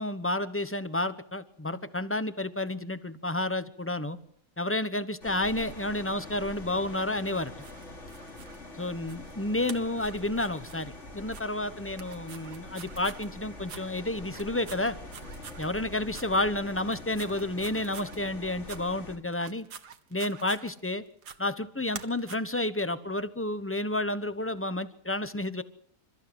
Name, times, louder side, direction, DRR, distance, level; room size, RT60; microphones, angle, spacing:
voice 1, 0.0-4.2 4.6-7.5 8.8-15.0 15.6-19.7 20.1-21.0 21.4-25.6, left 1 dB, 10° left, 13 dB, 0.8 m, -30 dB
sound 1, 5.2-19.2, left 2 dB, 45° left, 3.3 m, -45 dB
sound 2, 7.3-8.6 9.1-9.3 9.6-10.8 11.3-11.4 11.9-13.3 13.7-13.8 14.2-15.7 16.1-16.3 16.8-18.2 18.6-18.8 19.3-20.9 21.2-21.4 21.9-22.4, right 7 dB, 85° right, 2.0 m, -46 dB
29.0 x 14.5 x 7.9 m, 0.67 s
omnidirectional pair, 1.7 m